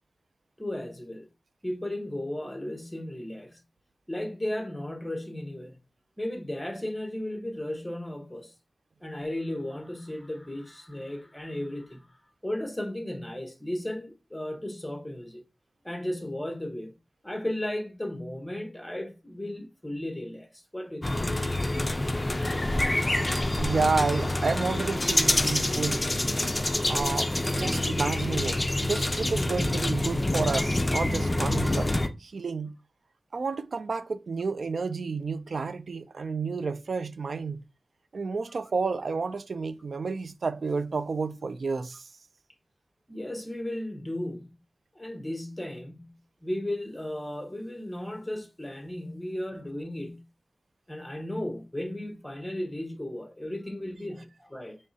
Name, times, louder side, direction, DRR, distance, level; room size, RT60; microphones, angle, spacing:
voice 1, 0.6-1.3 1.6-3.6 4.1-5.8 6.2-8.5 9.0-15.4 15.8-16.9 17.2-21.1 43.1-44.5 44.9-46.1 46.4-50.2 50.9-54.8, left 1 dB, 10° left, 1.0 m, -35 dB
sound 1, 21.0-32.1, left 1 dB, 25° left, 0.4 m, -27 dB
voice 2, 23.6-26.1 26.9-31.9 32.2-32.8 33.3-37.6 38.1-42.1, right 4 dB, 75° right, 0.3 m, -30 dB
4.5 x 3.2 x 2.7 m
wide cardioid pair, 75°, 0 cm